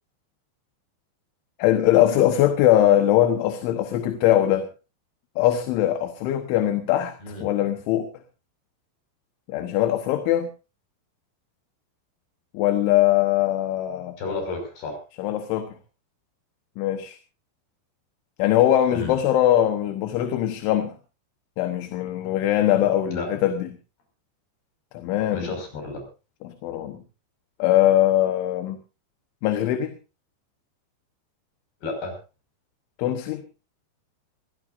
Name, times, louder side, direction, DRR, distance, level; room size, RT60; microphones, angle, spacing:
voice 1, 1.6-4.7 5.4-7.2 7.4-8.1 9.5-10.5 12.5-14.2 15.2-15.7 16.8-17.2 18.4-21.0 21.6-23.7 24.9-25.5 26.4-27.0 27.6-28.8 29.4-30.0 33.0-33.5, left 12 dB, 80° left, 7 dB, 3.6 m, -21 dB
voice 2, 14.2-15.0 18.9-19.2 23.1-23.3 25.3-26.0 31.8-32.2, left 3 dB, 55° left, 4 dB, 7.5 m, -32 dB
24.5 x 16.0 x 2.6 m, 0.32 s
omnidirectional pair, 5.4 m